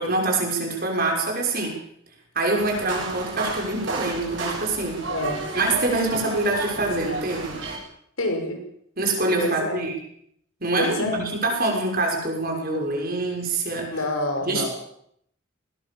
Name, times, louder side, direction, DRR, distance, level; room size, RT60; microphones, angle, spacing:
voice 1, 0.0-1.8 2.3-5.0 5.5-7.5 9.0-10.0 10.6-14.0 14.5-14.7, right 2 dB, 45° right, 1 dB, 6.4 m, -25 dB
sound 1, 2.6-7.8, right 3 dB, 60° right, 8.0 m, -32 dB
voice 2, 5.1-5.4 8.2-8.6 9.4-9.8 10.8-11.3 13.9-14.7, left 2 dB, 90° left, 4 dB, 5.8 m, -27 dB
20.5 x 19.0 x 7.3 m, 0.69 s
head